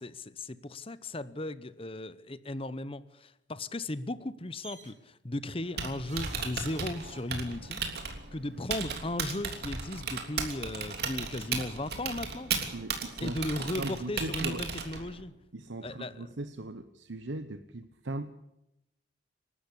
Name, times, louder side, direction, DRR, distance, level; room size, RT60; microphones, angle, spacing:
voice 1, 0.0-7.8 8.3-12.5 13.2-15.3 15.8-16.4, left 1 dB, 30° left, 15 dB, 0.9 m, -36 dB
sound 1, 4.6-4.9 6.0-7.7 8.9-9.0 9.3-9.4, right 4 dB, 40° right, 3.4 m, -49 dB
Typing, 5.6-15.2, right 5 dB, 55° right, 3.2 m, -36 dB
voice 2, 12.7-13.4 13.7-14.6 15.5-18.3, right 2 dB, 75° right, 9 dB, 1.0 m, -39 dB
28.5 x 12.5 x 8.5 m, 0.88 s
head